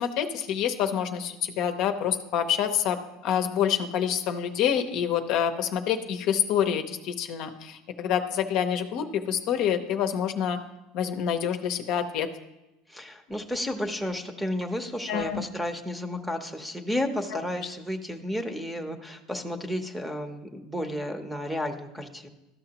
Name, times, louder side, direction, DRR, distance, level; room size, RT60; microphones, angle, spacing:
voice 1, 0.0-3.0 3.2-10.6 10.9-12.3 15.1-15.4, left 9 dB, 60° left, 6 dB, 0.7 m, -27 dB
voice 2, 12.9-22.3, left 1 dB, ahead, 7 dB, 0.8 m, -32 dB
13.0 x 5.7 x 2.9 m, 1.0 s
supercardioid pair, 110°, 0 cm